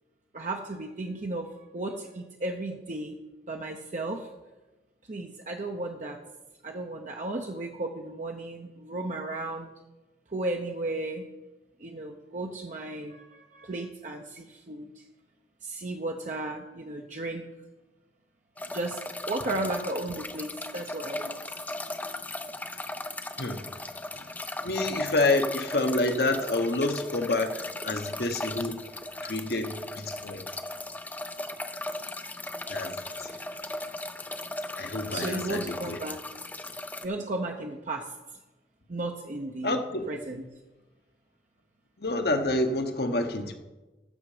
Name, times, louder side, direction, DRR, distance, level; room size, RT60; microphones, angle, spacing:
voice 1, 0.3-3.2 3.5-4.3 5.1-6.2 6.6-9.7 10.3-11.2 11.8-14.9 15.6-17.4 18.7-19.0 19.3-21.4 33.0-33.4 35.1-36.2 37.0-38.0 38.9-39.8 40.1-40.4, right 2 dB, 45° right, 2 dB, 0.7 m, -34 dB
sound 1, 18.6-37.1, left 1 dB, 10° left, 0.4 m, -37 dB
voice 2, 23.4-23.7 24.1-24.3 24.6-28.8 29.2-30.4 32.7-32.9 33.2-33.3 34.8-36.0 39.6-40.1 42.0-43.6, left 2 dB, 60° left, 6 dB, 1.0 m, -28 dB
14.0 x 6.5 x 4.9 m, 1.1 s
head